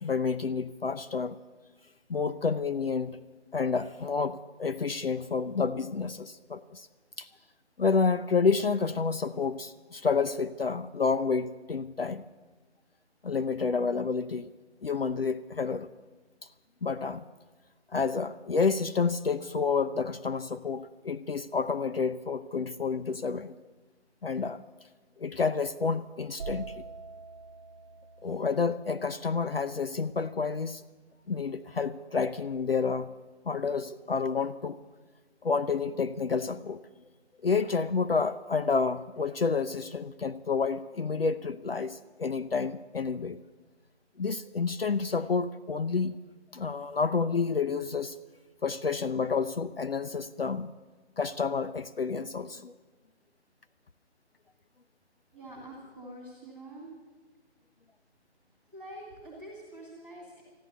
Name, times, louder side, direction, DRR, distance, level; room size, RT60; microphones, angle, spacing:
voice 1, 0.0-1.4 2.1-3.2 3.5-6.9 7.2-7.3 7.8-12.2 13.2-14.5 14.8-15.9 16.8-17.2 17.9-23.5 24.2-24.6 25.2-26.8 28.2-30.8 31.3-33.1 33.5-34.8 35.4-36.8 37.4-43.4 44.2-46.1 46.5-48.2 48.6-50.7 51.2-52.7, left 5 dB, 55° left, 10 dB, 0.5 m, -29 dB
sound 1, 26.4-30.2, right 4 dB, 30° right, 1.2 m, -45 dB
voice 2, 55.3-56.9 58.7-60.4, right 1 dB, ahead, -9 dB, 1.0 m, -45 dB
14.0 x 10.0 x 8.2 m, 1.3 s
figure-of-eight pair, 175°, 35 cm